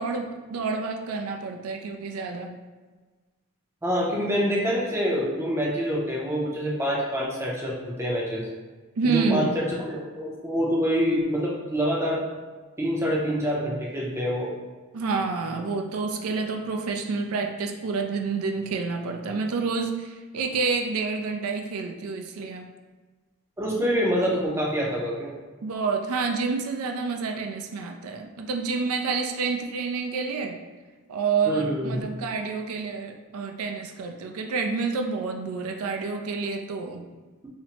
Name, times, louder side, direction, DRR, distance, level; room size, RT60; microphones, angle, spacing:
voice 1, 0.0-2.6 9.0-9.6 14.9-22.7 25.6-30.6 31.1-37.0, right 4 dB, 80° right, 4 dB, 0.4 m, -28 dB
voice 2, 3.8-8.5 9.0-12.3 12.8-14.5 23.6-25.4 31.5-32.1, equal, 10° right, -4 dB, 0.5 m, -26 dB
5.6 x 2.0 x 2.8 m, 1.3 s
head